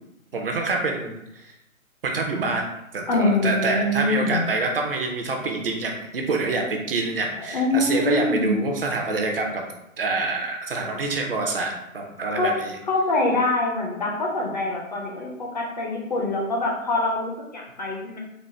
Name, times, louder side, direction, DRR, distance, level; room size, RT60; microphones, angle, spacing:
voice 1, 0.3-1.5 2.0-2.6 2.9-9.6 10.0-12.7, right 3 dB, 45° right, 2 dB, 0.6 m, -26 dB
voice 2, 3.1-4.5 7.4-8.6 12.3-12.5 12.9-18.2, left 2 dB, 35° left, -1 dB, 0.5 m, -24 dB
4.0 x 2.1 x 3.2 m, 0.82 s
figure-of-eight pair, 140°, 42 cm